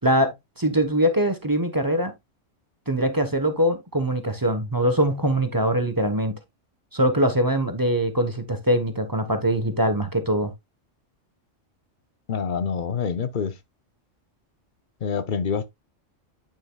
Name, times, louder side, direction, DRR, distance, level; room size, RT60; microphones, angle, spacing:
voice 1, 0.0-2.1 2.9-6.3 6.9-10.5, equal, 20° right, 0.9 m, -22 dB
voice 2, 12.3-13.6 15.0-15.7, left 6 dB, 50° left, 0.7 m, -26 dB
8.6 x 6.5 x 2.2 m
omnidirectional pair, 1.3 m